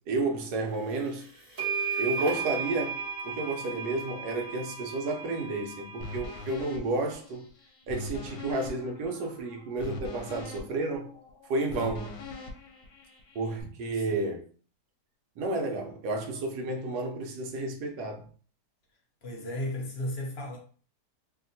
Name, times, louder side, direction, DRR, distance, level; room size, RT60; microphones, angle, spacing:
voice 1, 0.1-1.3 2.0-7.5 7.9-11.2 11.5-12.2 13.3-14.5 15.4-18.3, right 2 dB, 75° right, 1.2 m, -31 dB
sound 1, 1.0-1.1 1.6-6.4, right 6 dB, 25° right, 0.8 m, -35 dB
sound 2, 6.0-13.6, left 3 dB, 90° left, 1.2 m, -42 dB
voice 2, 19.2-20.6, left 1 dB, 55° left, 0.7 m, -35 dB
2.8 x 2.8 x 2.6 m
omnidirectional pair, 1.8 m